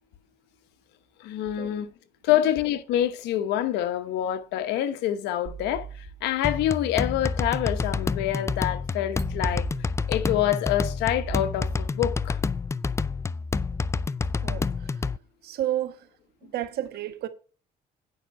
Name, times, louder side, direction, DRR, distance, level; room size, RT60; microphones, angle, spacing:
voice 1, 1.2-1.9 2.2-12.4, left 12 dB, 90° left, 1.1 m, -26 dB
sound 1, 5.5-6.5 7.4-8.3 9.2-10.3 11.1-12.1, right 7 dB, 50° right, 1.7 m, -40 dB
sound 2, 6.4-15.2, left 4 dB, 15° left, 0.4 m, -28 dB
voice 2, 14.4-15.0 15.4-16.1 16.4-17.3, right 12 dB, 70° right, 1.3 m, -31 dB
9.2 x 5.7 x 5.4 m
cardioid pair, 110°, 17 cm